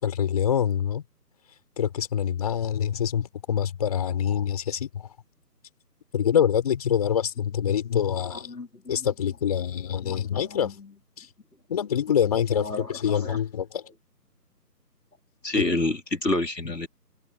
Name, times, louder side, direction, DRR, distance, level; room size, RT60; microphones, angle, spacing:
voice 1, 0.0-1.0 1.8-5.1 6.1-8.5 8.9-10.7 11.2-11.3 11.7-13.8 15.6-15.7, left 9 dB, 25° left, 5.0 m, -25 dB
voice 2, 8.3-9.1 10.0-10.9 12.5-13.4 15.4-16.9, left 2 dB, 80° left, 3.6 m, -30 dB
open air
figure-of-eight pair, 160°, 49 cm